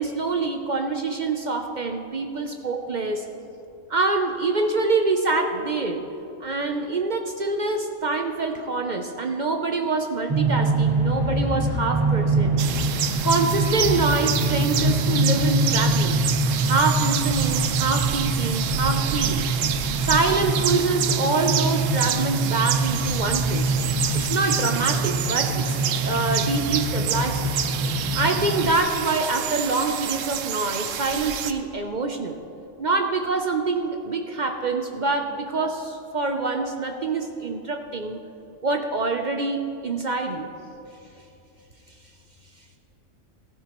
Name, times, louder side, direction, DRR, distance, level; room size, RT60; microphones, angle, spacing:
voice 1, 0.0-3.2 3.9-6.0 6.4-12.6 13.2-16.3 16.6-19.5 20.0-23.7 24.1-25.8 26.0-27.5 28.1-32.4 32.8-38.2 38.6-40.5, right 3 dB, 50° right, 5 dB, 0.6 m, -25 dB
sound 1, 10.3-28.8, right 2 dB, 20° right, 0.8 m, -24 dB
sound 2, 12.6-31.5, right 9 dB, 80° right, 1.0 m, -28 dB
voice 2, 40.7-42.8, left 3 dB, 70° left, 7 dB, 0.4 m, -57 dB
15.5 x 13.0 x 3.0 m, 2.9 s
omnidirectional pair, 1.3 m